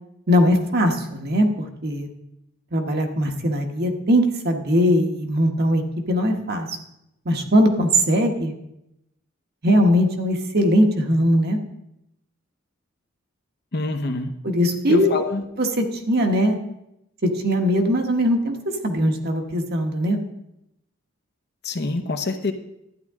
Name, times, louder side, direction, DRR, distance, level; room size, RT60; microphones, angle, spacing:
voice 1, 0.3-1.5 1.8-2.1 2.7-6.7 7.2-8.5 9.6-11.6 14.4-15.1 15.6-16.6 17.2-18.5 18.8-20.2, equal, 50° right, 4 dB, 1.2 m, -20 dB
voice 2, 13.7-14.3 14.9-15.4 21.6-22.5, left 2 dB, 55° left, 6 dB, 0.9 m, -25 dB
12.0 x 9.5 x 3.6 m, 0.83 s
head